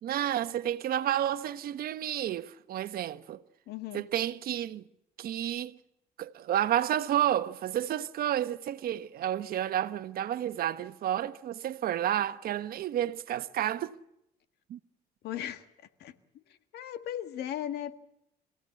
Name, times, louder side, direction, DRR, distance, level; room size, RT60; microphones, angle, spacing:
voice 1, 0.0-3.4 3.9-4.8 5.2-5.8 6.2-13.9 14.7-14.8, right 11 dB, 60° right, 1.1 m, -31 dB
voice 2, 3.7-4.0 15.2-15.6 16.0-16.1 16.7-18.0, left 11 dB, 75° left, 1.7 m, -36 dB
26.0 x 16.5 x 8.4 m
cardioid pair, 110°, 17 cm